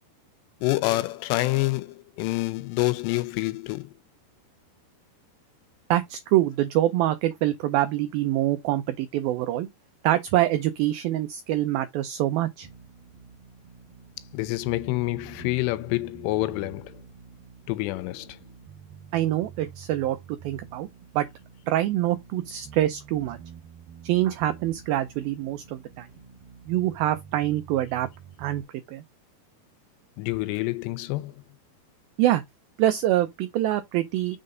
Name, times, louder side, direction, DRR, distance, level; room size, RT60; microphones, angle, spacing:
voice 1, 0.6-3.9 14.3-17.0 17.7-18.4 30.2-31.4, left 20 dB, 90° left, 2.9 m, -27 dB
voice 2, 5.9-9.7 10.0-12.7 19.1-20.9 21.1-21.3 21.7-23.4 24.0-26.1 26.7-28.1 28.4-28.6 28.9-29.0 32.2-32.4 32.8-34.4, right 14 dB, 90° right, 2.1 m, -25 dB
sound 1, 12.6-28.6, right 7 dB, 65° right, 3.0 m, -48 dB
6.4 x 3.9 x 3.7 m
omnidirectional pair, 4.9 m